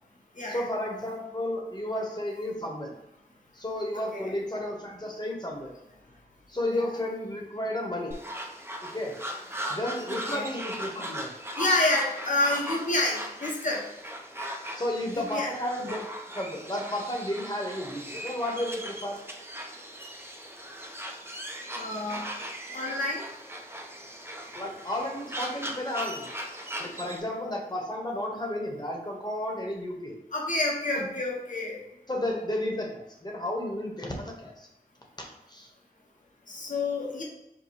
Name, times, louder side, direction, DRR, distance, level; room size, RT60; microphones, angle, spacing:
voice 1, 0.5-2.9 3.5-5.7 6.5-8.1 8.8-9.1 9.7-11.3 14.7-16.0 16.3-19.2 24.5-26.3 26.8-30.2 30.9-31.1 32.1-34.7 35.2-35.7, left 1 dB, 25° left, 0 dB, 1.0 m, -32 dB
sound 1, 8.1-27.2, equal, 15° right, 0.5 m, -39 dB
voice 2, 11.6-13.8 15.1-15.5 21.7-22.2 22.7-23.2 30.3-31.8 36.5-37.2, left 2 dB, 55° left, -3 dB, 0.9 m, -28 dB
4.7 x 2.2 x 4.1 m, 0.86 s
wide cardioid pair, 70°, 16 cm